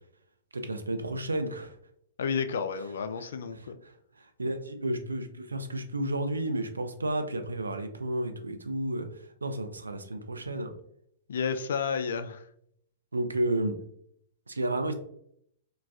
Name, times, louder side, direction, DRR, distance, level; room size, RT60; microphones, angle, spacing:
voice 1, 0.5-1.8 3.2-10.7 13.1-13.8 14.5-14.9, right 1 dB, 85° right, 0.4 m, -32 dB
voice 2, 2.2-3.8 11.3-12.5, left 6 dB, 65° left, 0.3 m, -31 dB
3.9 x 2.2 x 2.4 m
figure-of-eight pair, 110°, 0 cm